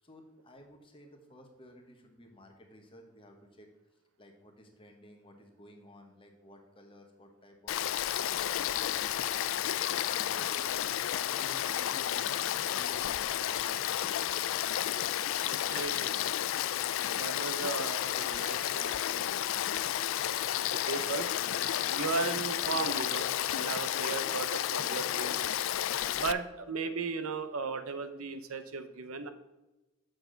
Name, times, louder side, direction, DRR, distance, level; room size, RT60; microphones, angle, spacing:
voice 1, 0.0-3.7 4.2-7.8 8.3-9.8 10.1-10.7 11.3-14.6, equal, 25° left, 3 dB, 1.2 m, -55 dB
Frog / Stream, 7.7-26.3, left 11 dB, 65° left, 0.3 m, -32 dB
voice 2, 15.7-16.3 17.1-21.3 21.9-25.6 26.1-29.3, right 4 dB, 85° right, 10 dB, 0.8 m, -37 dB
8.1 x 6.6 x 3.9 m, 1.1 s
head